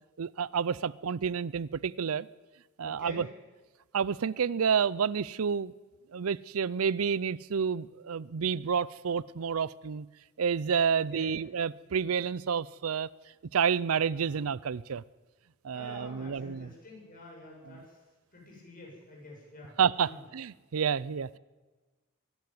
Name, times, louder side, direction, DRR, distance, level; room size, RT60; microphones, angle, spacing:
voice 1, 0.2-2.3 2.8-3.3 3.9-5.7 6.1-10.1 10.4-13.1 13.5-15.0 15.6-16.7 17.6-17.8 19.8-21.4, right 6 dB, 85° right, 21 dB, 0.5 m, -29 dB
voice 2, 2.8-3.2 10.9-11.3 15.7-18.0 18.3-19.7 20.0-20.2, left 2 dB, 40° left, -1 dB, 7.8 m, -48 dB
24.0 x 11.5 x 9.5 m, 1.3 s
head